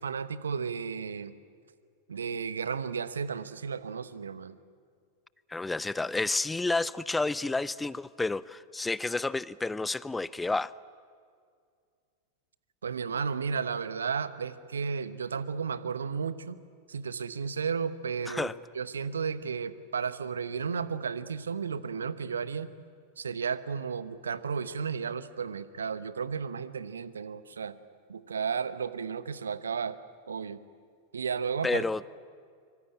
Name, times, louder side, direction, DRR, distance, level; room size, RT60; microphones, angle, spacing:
voice 1, 0.0-1.3 2.1-4.6 12.8-16.6 16.9-22.7 23.2-27.7 28.1-30.0 30.3-30.6 31.1-31.8, right 6 dB, 70° right, 15 dB, 1.1 m, -33 dB
voice 2, 5.5-10.7 18.3-18.5 31.6-32.0, left 3 dB, 10° left, 20 dB, 0.6 m, -30 dB
25.0 x 24.5 x 8.9 m, 2.1 s
figure-of-eight pair, 90°, 0 cm